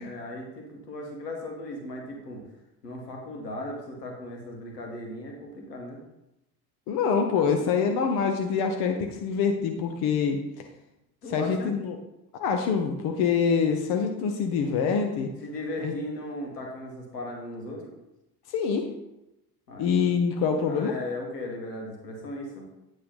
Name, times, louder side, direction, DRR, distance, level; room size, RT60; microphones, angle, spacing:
voice 1, 0.0-2.4 2.8-6.0 11.2-11.7 15.4-17.9 19.7-19.9 20.7-22.7, left 1 dB, 85° left, 0 dB, 1.6 m, -37 dB
voice 2, 6.9-10.4 11.3-11.9 12.4-15.3 15.8-15.9 18.5-18.9 19.8-20.9, left 6 dB, 50° left, 4 dB, 1.0 m, -25 dB
8.9 x 3.6 x 5.3 m, 0.91 s
figure-of-eight pair, 65°, 47 cm